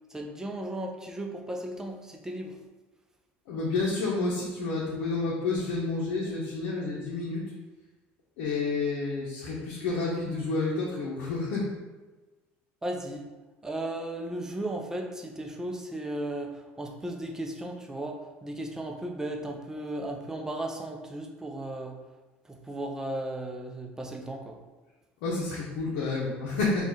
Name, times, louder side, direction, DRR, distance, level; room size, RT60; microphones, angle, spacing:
voice 1, 0.1-2.5 12.8-13.3 13.6-16.5 16.8-21.9 22.5-24.6, right 1 dB, 10° right, 2 dB, 0.5 m, -35 dB
voice 2, 3.5-7.4 8.4-11.7 25.2-26.9, left 3 dB, 85° left, -5 dB, 0.8 m, -30 dB
4.2 x 2.4 x 3.7 m, 1.2 s
supercardioid pair, 115°, 5 cm